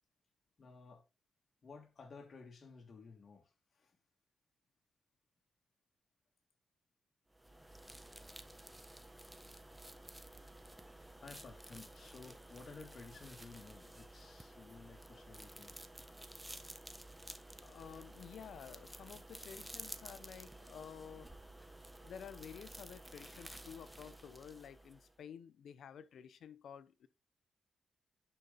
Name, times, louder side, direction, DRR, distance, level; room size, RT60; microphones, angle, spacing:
voice 1, 0.6-1.1 1.6-4.0 11.2-15.8, left 4 dB, 50° left, 2.9 m, -55 dB
sound 1, 7.3-25.2, right 1 dB, 10° right, 1.2 m, -53 dB
voice 2, 17.6-21.3 22.0-27.1, left 8 dB, 75° left, 0.9 m, -52 dB
11.0 x 5.6 x 4.2 m
cardioid pair, 65°, 0 cm